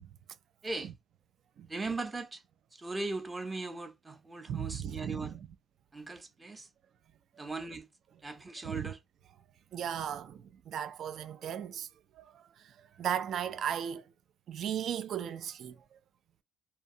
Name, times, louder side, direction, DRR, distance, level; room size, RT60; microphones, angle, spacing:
voice 1, 0.6-0.9 1.7-2.4 2.7-5.3 5.9-6.7 7.3-7.9 8.2-9.0, right 3 dB, 20° right, 0.7 m, -39 dB
voice 2, 4.5-5.3 8.7-8.9 9.7-11.9 12.2-14.0 14.5-16.0, right 9 dB, 55° right, 0.4 m, -36 dB
2.6 x 2.2 x 2.6 m
cardioid pair, 100°, 0 cm